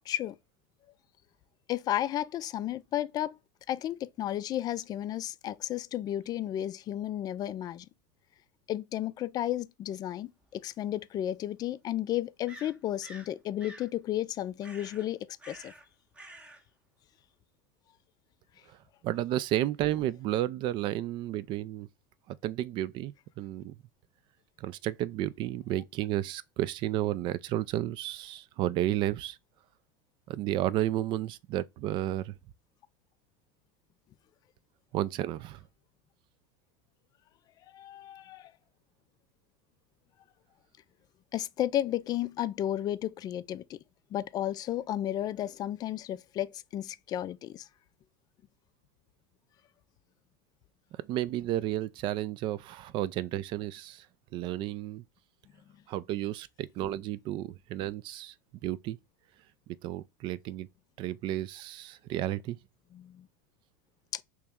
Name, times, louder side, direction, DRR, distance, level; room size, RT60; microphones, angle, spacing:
voice 1, 0.1-0.4 1.7-3.4 3.7-7.9 8.7-15.7 37.7-38.5 41.3-43.8 44.1-47.7 62.9-63.3 64.1-64.2, left 12 dB, 35° left, 0.4 m, -33 dB
sound 1, 10.4-10.5 12.5-13.3 13.6-13.9 14.6-15.1 15.4-15.9 16.1-16.6, right 1 dB, 10° right, 0.8 m, -49 dB
voice 2, 19.0-21.9 22.3-23.8 24.6-29.4 30.3-32.3 34.9-35.6 51.1-54.1 54.3-55.0 55.9-58.3 58.6-59.0 59.8-60.7 61.0-62.6, right 13 dB, 45° right, 0.4 m, -32 dB
3.2 x 3.0 x 3.5 m
hypercardioid pair, 100°, 11 cm